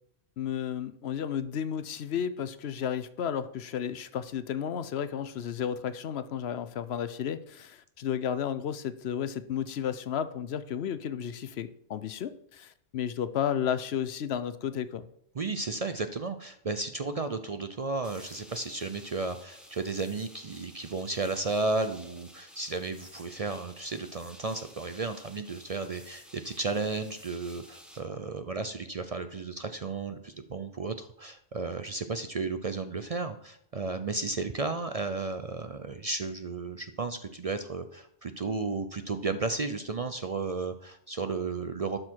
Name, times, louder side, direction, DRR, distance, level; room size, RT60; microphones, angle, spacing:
voice 1, 0.4-15.1, left 8 dB, 70° left, 13 dB, 0.9 m, -33 dB
voice 2, 15.3-42.0, right 3 dB, 45° right, 9 dB, 0.5 m, -33 dB
sound 1, 18.0-28.0, equal, ahead, 1.5 m, -52 dB
12.0 x 6.3 x 4.5 m, 0.70 s
omnidirectional pair, 1.1 m